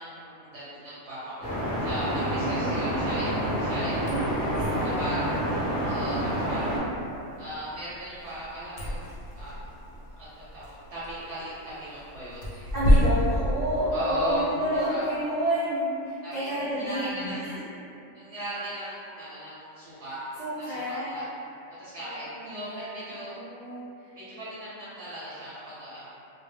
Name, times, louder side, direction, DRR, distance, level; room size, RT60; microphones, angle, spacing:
voice 1, 0.0-1.5 1.8-4.2 5.0-5.3 5.8-6.9 7.4-9.7 10.2-10.3 10.5-12.5 13.9-14.4 14.9-15.1 16.2-16.5 16.8-17.4 18.1-20.2 20.6-21.2 21.8-23.3 24.1-26.0, equal, 65° right, -10 dB, 0.8 m, -37 dB
sound 1, 1.4-6.8, right 1 dB, 25° left, 0.4 m, -28 dB
voice 2, 2.4-3.6 4.1-5.4 12.5-17.6 20.4-21.2 22.0-24.1, equal, 85° right, -10 dB, 0.3 m, -31 dB
sound 2, 3.9-14.4, equal, 70° left, 0.9 m, -30 dB
2.1 x 2.1 x 3.2 m, 2.8 s
omnidirectional pair, 1.4 m